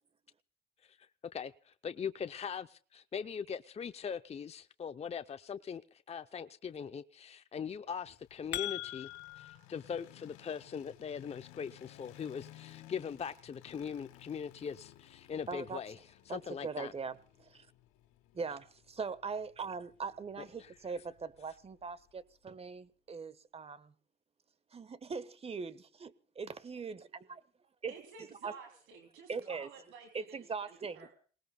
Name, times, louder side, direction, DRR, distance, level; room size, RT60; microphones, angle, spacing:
voice 1, 0.8-9.1 9.4-16.0 16.3-16.9 20.6-20.7, left 7 dB, 30° left, 0.7 m, -41 dB
sound 1, 8.1-22.2, left 14 dB, 90° left, 2.0 m, -58 dB
sound 2, 8.1-9.6, left 16 dB, 60° left, 2.2 m, -40 dB
voice 2, 15.5-15.8 16.3-17.7 18.3-23.9 24.7-27.4 27.8-27.9 28.4-28.5 29.3-29.7 30.1-31.1, right 5 dB, 30° right, 1.3 m, -41 dB
voice 3, 27.9-31.1, right 5 dB, 75° right, 3.1 m, -53 dB
27.5 x 19.0 x 2.3 m
supercardioid pair, 85°, 20 cm